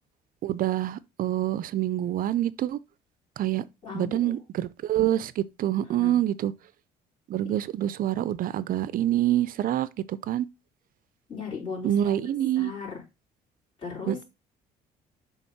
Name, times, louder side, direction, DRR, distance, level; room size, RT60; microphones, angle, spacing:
voice 1, 0.4-2.8 3.4-3.6 3.9-6.5 7.3-10.5 11.8-12.7 14.1-14.2, right 12 dB, 55° right, 0.5 m, -26 dB
voice 2, 3.8-4.4 5.9-6.2 7.4-7.6 11.3-12.1 12.6-13.0 13.8-14.2, left 5 dB, 30° left, 4.2 m, -37 dB
6.3 x 3.5 x 5.5 m
supercardioid pair, 85°, 17 cm